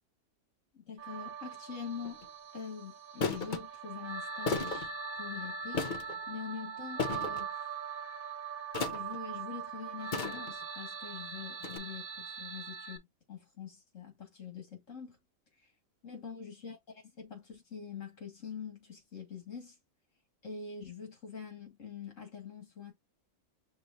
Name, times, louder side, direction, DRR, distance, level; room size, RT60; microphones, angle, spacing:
voice 1, 0.7-2.2 2.5-5.9 6.3-7.7 8.9-13.0 13.3-15.2 15.6-15.7 16.0-19.8 20.4-22.9, left 6 dB, 65° left, 2.5 m, -44 dB
sound 1, 1.0-13.0, right 6 dB, 80° right, 1.5 m, -41 dB
sound 2, 2.0-2.3 3.2-3.6 4.5-4.9 5.7-6.2 7.0-7.4 8.7-9.2 10.1-10.6 11.6-11.8, left 4 dB, 40° left, 0.8 m, -34 dB
6.2 x 3.2 x 2.6 m
omnidirectional pair, 1.4 m